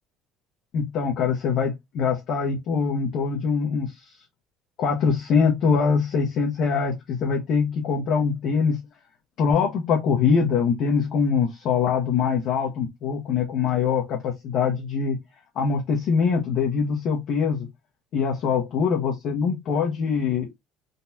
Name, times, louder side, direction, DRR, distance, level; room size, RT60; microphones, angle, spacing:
voice 1, 0.7-4.2 4.8-8.8 9.4-15.2 15.5-17.7 18.1-20.5, left 6 dB, 60° left, 0.9 m, -23 dB
3.9 x 2.3 x 2.7 m
supercardioid pair, 105°, 0 cm